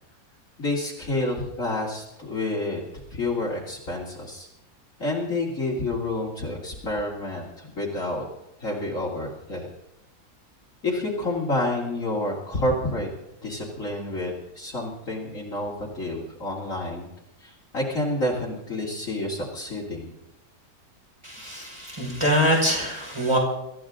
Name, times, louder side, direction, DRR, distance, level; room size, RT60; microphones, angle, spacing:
voice 1, 0.6-2.8 3.1-4.5 5.0-8.2 8.6-9.7 10.8-13.1 13.4-17.1 17.4-20.1, left 1 dB, 50° left, -5 dB, 3.5 m, -29 dB
voice 2, 21.2-23.4, equal, 15° right, -1 dB, 5.9 m, -24 dB
23.5 x 15.0 x 3.9 m, 0.88 s
omnidirectional pair, 1.8 m